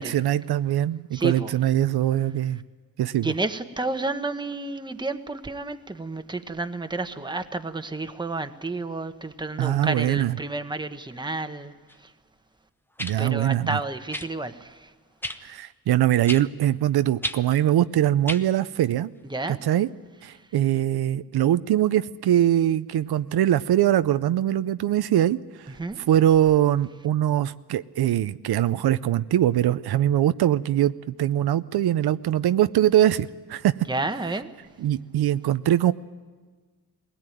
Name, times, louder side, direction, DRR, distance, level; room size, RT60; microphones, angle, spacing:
voice 1, 0.0-2.6 3.0-3.3 9.6-10.3 13.0-13.8 15.4-19.1 19.5-19.9 20.2-25.4 26.1-33.7 34.8-35.9, right 12 dB, 85° right, 13 dB, 0.6 m, -22 dB
voice 2, 1.1-1.5 3.2-11.7 12.0-12.1 13.2-14.9 15.4-15.6 19.2-19.6 20.3-20.4 25.7-26.0 33.9-34.5, right 2 dB, 10° right, 8 dB, 1.1 m, -31 dB
sound 1, 11.9-12.0 13.0-13.2 14.1-14.3 15.2-15.4 16.3-16.4 17.2-17.4 18.3-18.4 19.4-19.5, left 1 dB, 5° left, 0.8 m, -31 dB
21.5 x 17.5 x 9.2 m, 1.4 s
wide cardioid pair, 115°, 37 cm